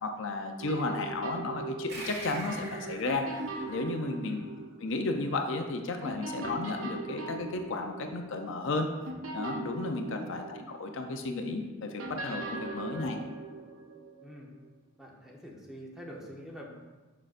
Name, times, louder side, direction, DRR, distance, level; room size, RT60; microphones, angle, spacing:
voice 1, 0.0-3.3 3.7-4.4 4.8-8.9 9.3-13.2, left 2 dB, 60° left, 4 dB, 0.5 m, -33 dB
sound 1, 0.6-5.7 6.0-11.3 12.0-14.7, right 2 dB, 75° right, 0.7 m, -41 dB
sound 2, 1.9-4.9, right 1 dB, 50° right, 1.3 m, -44 dB
voice 2, 10.1-10.5 12.7-13.1 14.2-14.5 15.0-16.7, equal, ahead, -2 dB, 0.8 m, -46 dB
6.4 x 6.2 x 2.5 m, 1.2 s
head